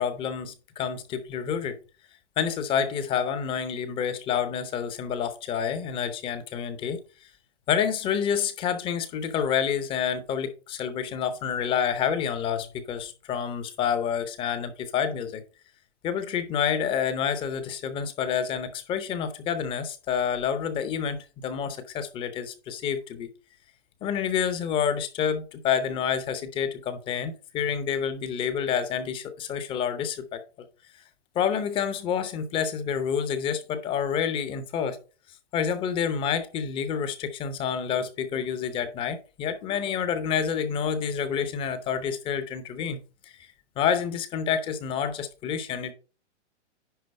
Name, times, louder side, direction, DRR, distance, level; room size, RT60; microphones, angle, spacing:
voice 1, 0.0-1.8 2.4-7.0 7.7-15.4 16.0-23.3 24.0-30.4 31.3-35.0 35.5-43.0 43.8-45.9, left 7 dB, 15° left, 0.7 m, -28 dB
10.5 x 3.8 x 5.2 m
hypercardioid pair, 150°, 35 cm